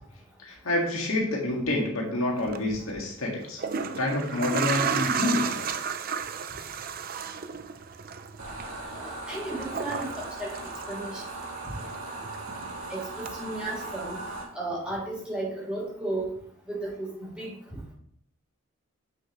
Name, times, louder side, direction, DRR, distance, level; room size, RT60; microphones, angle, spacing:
voice 1, 0.4-5.8, left 1 dB, 70° left, -1 dB, 1.7 m, -28 dB
sound 1, 2.4-2.6 3.4-11.4 11.7-12.8 13.3-13.4, right 6 dB, 40° right, 0.5 m, -33 dB
sound 2, 8.4-14.4, right 2 dB, 75° right, 2.2 m, -38 dB
voice 2, 8.9-10.6 10.9-11.2 12.9-14.2 14.5-16.3 16.7-17.6, right 2 dB, 5° right, -6 dB, 3.3 m, -34 dB
8.0 x 6.4 x 3.0 m, 0.63 s
head